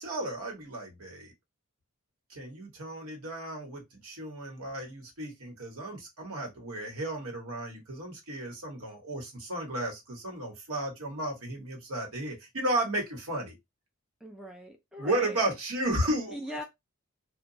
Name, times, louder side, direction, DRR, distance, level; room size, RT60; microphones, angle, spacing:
voice 1, 0.0-1.3 2.3-13.5 15.0-16.4, right 1 dB, 85° right, 1.1 m, -33 dB
voice 2, 14.2-15.4 16.3-16.6, equal, ahead, 0.4 m, -40 dB
2.8 x 2.2 x 2.6 m
head